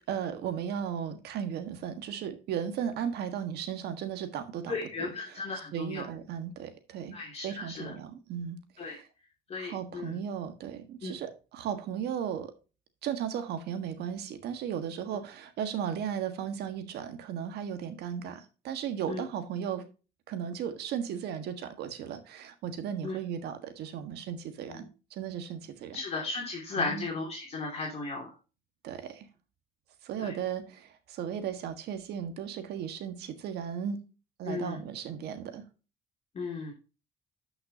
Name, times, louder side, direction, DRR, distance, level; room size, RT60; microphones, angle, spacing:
voice 1, 0.1-4.9 5.3-5.4 5.7-7.2 7.4-9.1 9.6-12.5 13.0-19.8 20.3-26.0 26.8-27.1 28.8-29.3 30.0-34.0 34.4-35.6, right 8 dB, 75° right, 1.6 m, -36 dB
voice 2, 4.7-6.1 7.1-7.9 8.8-9.0 9.5-10.2 11.0-11.1 19.1-19.2 23.0-23.1 24.7-24.8 25.9-28.3 30.2-30.3 34.4-34.8 36.3-36.7, left 3 dB, 40° left, 2.7 m, -35 dB
12.0 x 5.9 x 2.8 m
cardioid pair, 110°, 17 cm